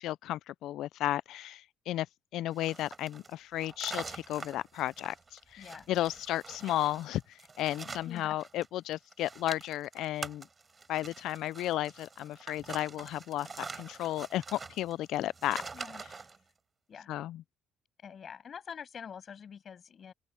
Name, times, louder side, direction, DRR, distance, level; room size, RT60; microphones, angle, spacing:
voice 1, 0.0-2.1 2.3-10.5 10.9-15.6 17.1-17.4, left 14 dB, 55° left, 0.4 m, -34 dB
sound 1, 2.5-8.7 8.9-16.4, right 4 dB, 20° right, 4.4 m, -45 dB
voice 2, 5.6-5.9 8.0-8.3 15.7-16.0 16.9-17.1 18.0-20.1, left 7 dB, 30° left, 7.7 m, -46 dB
open air
cardioid pair, 175°, 0 cm